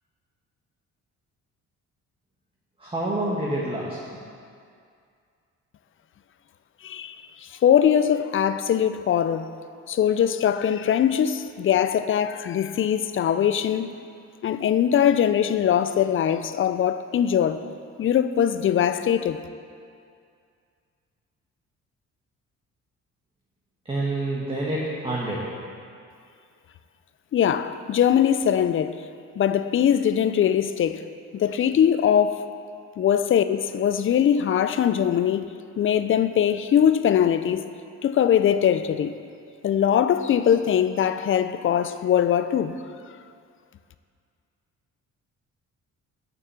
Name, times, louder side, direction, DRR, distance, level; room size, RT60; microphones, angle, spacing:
voice 1, 2.8-4.0 23.8-25.4, right 1 dB, 20° right, 1.3 m, -27 dB
voice 2, 6.8-7.2 7.6-9.5 9.9-13.9 14.4-17.6 18.0-19.4 27.3-29.0 29.4-31.0 31.3-32.5 33.0-35.4 35.8-37.6 38.0-39.1 39.6-42.8, left 9 dB, 45° left, 0.4 m, -21 dB
6.7 x 6.0 x 6.8 m
cardioid pair, 90°, 30 cm